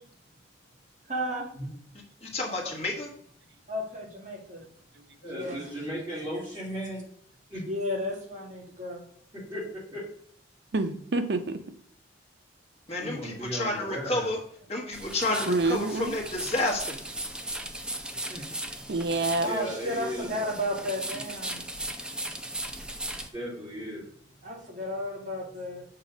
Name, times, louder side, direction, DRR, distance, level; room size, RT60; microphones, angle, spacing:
voice 1, 1.1-1.4 3.7-4.6 5.3-5.7 7.7-9.0 19.4-21.6 24.4-25.8, equal, 40° right, -2 dB, 1.9 m, -33 dB
voice 2, 2.2-3.1 12.9-14.4 14.7-17.0, left 2 dB, 35° left, -1 dB, 1.4 m, -30 dB
voice 3, 5.2-7.0 7.5-7.6 9.3-10.0 13.0-14.3 18.3-18.9 19.4-20.3 21.7-24.5, equal, 25° right, -8 dB, 2.4 m, -37 dB
voice 4, 10.7-11.6 15.5-16.2 18.9-19.5, right 3 dB, 60° right, 9 dB, 0.6 m, -27 dB
Microchip Sorting Testing, 14.9-23.3, right 1 dB, 5° right, 0.4 m, -37 dB
6.7 x 3.1 x 5.1 m, 0.64 s
head